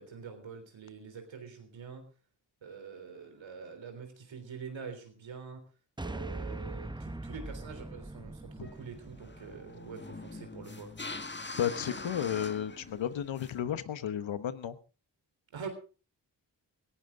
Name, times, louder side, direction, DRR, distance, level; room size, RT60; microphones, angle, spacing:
voice 1, 0.0-2.1 2.6-5.6 6.0-11.0 15.5-15.7, right 5 dB, 85° right, 7 dB, 3.6 m, -45 dB
sound 1, 6.0-10.4, right 2 dB, 10° right, 0.9 m, -42 dB
sound 2, 8.6-13.6, left 3 dB, 25° left, 1.7 m, -44 dB
voice 2, 11.6-14.8, left 9 dB, 85° left, 13 dB, 1.1 m, -33 dB
17.5 x 16.0 x 3.7 m, 0.36 s
cardioid pair, 40°, 44 cm